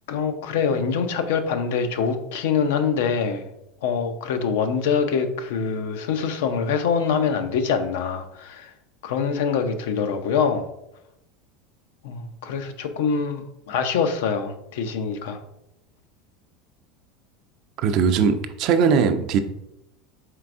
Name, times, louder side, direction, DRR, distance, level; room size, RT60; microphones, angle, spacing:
voice 1, 0.1-3.5 3.8-8.7 9.0-10.7 12.0-15.4, left 6 dB, 80° left, 0.4 m, -24 dB
voice 2, 17.8-19.4, right 6 dB, 55° right, 0.4 m, -20 dB
4.5 x 3.3 x 2.5 m
supercardioid pair, 115°, 0 cm